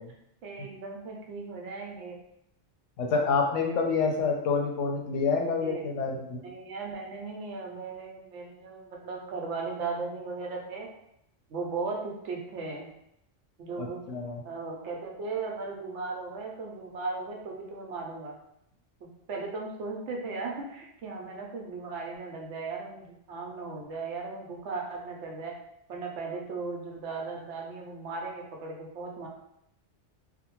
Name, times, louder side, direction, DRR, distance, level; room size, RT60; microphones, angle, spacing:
voice 1, 0.4-2.2 5.4-5.8 6.1-10.9 11.5-12.9 13.6-14.0 14.4-18.4 19.0-25.5 25.9-29.3, right 4 dB, 75° right, 0 dB, 0.9 m, -37 dB
voice 2, 3.0-6.4 13.8-14.4, left 4 dB, 90° left, 1 dB, 0.9 m, -27 dB
2.6 x 2.1 x 3.0 m, 0.78 s
omnidirectional pair, 1.2 m